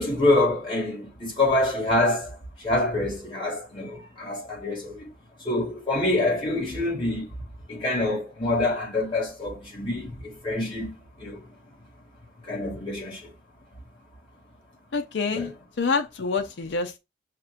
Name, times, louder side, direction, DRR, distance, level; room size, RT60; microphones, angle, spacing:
voice 1, 0.0-5.1 5.4-7.3 7.7-10.9 11.2-11.4 12.4-13.3 15.3-15.5, left 2 dB, 25° left, 2.1 m, -26 dB
voice 2, 14.9-17.0, left 4 dB, 70° left, 0.5 m, -27 dB
5.8 x 2.5 x 2.5 m
head